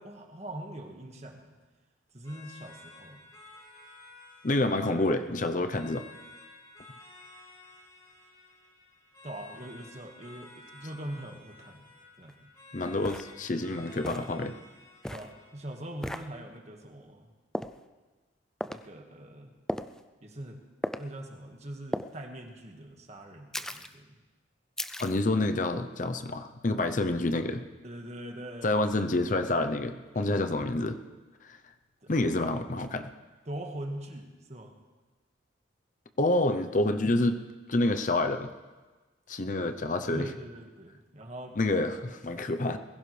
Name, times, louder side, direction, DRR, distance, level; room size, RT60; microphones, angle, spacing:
voice 1, 0.0-1.6 2.1-3.2 9.2-11.9 12.2-12.5 15.1-17.3 18.6-19.5 20.2-20.6 21.0-24.2 27.8-29.1 30.1-30.3 32.0-32.6 33.5-34.8 40.1-41.6, right 1 dB, 35° right, 2 dB, 1.7 m, -42 dB
sound 1, 2.2-15.8, left 2 dB, 20° left, 4.3 m, -53 dB
voice 2, 4.4-6.0 12.7-14.6 25.0-27.6 28.6-31.0 31.4-31.6 32.1-33.1 36.2-37.4 37.7-38.5 39.3-40.3 41.6-42.8, left 2 dB, 45° left, 8 dB, 0.7 m, -28 dB
sound 2, 12.3-12.4 13.0-13.3 14.0-14.3 15.0-15.3 16.0-16.3 17.5-17.8 18.6-18.8 19.7-20.0 20.8-21.0 21.9-22.1 23.5-23.9 24.8-25.2, equal, 5° left, 0.4 m, -35 dB
21.5 x 16.0 x 3.4 m, 1.3 s
head